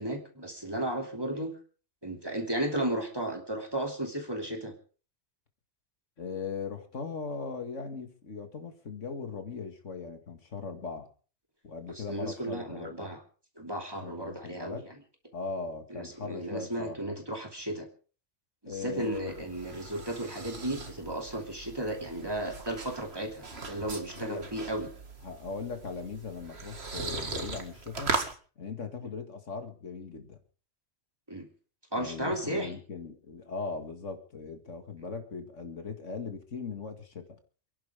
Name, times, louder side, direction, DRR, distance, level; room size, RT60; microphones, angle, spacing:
voice 1, 0.0-1.6 2.0-4.7 11.9-13.2 13.6-14.8 15.9-17.9 18.6-24.9 31.3-31.5 31.9-32.8, right 1 dB, 20° right, 3 dB, 2.8 m, -34 dB
voice 2, 6.2-11.1 11.6-13.1 14.0-14.9 15.3-17.0 18.7-19.4 24.1-24.4 25.2-28.1 28.6-30.4 32.0-37.3, left 5 dB, 80° left, 6 dB, 2.4 m, -39 dB
sound 1, 18.7-28.3, right 3 dB, 60° right, 2.2 m, -39 dB
28.5 x 11.0 x 3.6 m, 0.39 s
omnidirectional pair, 1.2 m